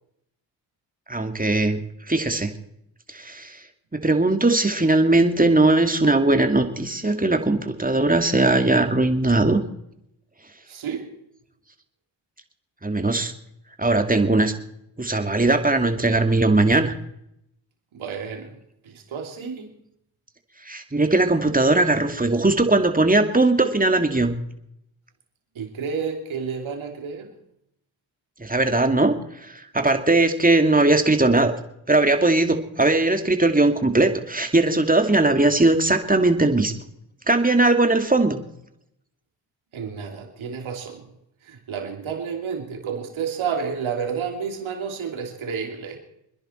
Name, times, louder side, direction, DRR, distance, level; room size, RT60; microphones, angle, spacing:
voice 1, 1.1-2.5 3.1-3.6 4.0-9.6 12.8-13.3 13.8-14.5 15.0-16.9 20.7-24.4 28.4-29.2 29.4-31.5 31.9-36.7 37.3-38.4, right 2 dB, 15° right, 6 dB, 2.3 m, -19 dB
voice 2, 10.7-11.1 17.9-18.6 18.8-19.7 25.5-27.3 39.7-41.1 41.4-46.0, right 6 dB, 80° right, 3 dB, 2.9 m, -30 dB
26.0 x 10.5 x 4.4 m, 0.78 s
supercardioid pair, 45°, 47 cm